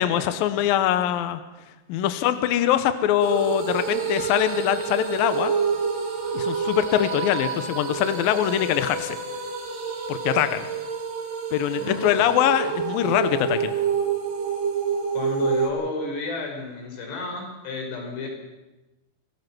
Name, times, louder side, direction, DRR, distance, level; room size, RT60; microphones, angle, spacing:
voice 1, 0.0-1.4 1.9-5.5 6.3-9.2 10.1-10.6 11.5-13.7, left 11 dB, 80° left, 10 dB, 2.1 m, -23 dB
sound 1, 3.2-15.7, right 6 dB, 60° right, 4.5 m, -28 dB
voice 2, 11.7-12.2 15.1-18.3, left 3 dB, 60° left, 1 dB, 6.7 m, -32 dB
25.0 x 18.0 x 6.1 m, 1.1 s
omnidirectional pair, 5.5 m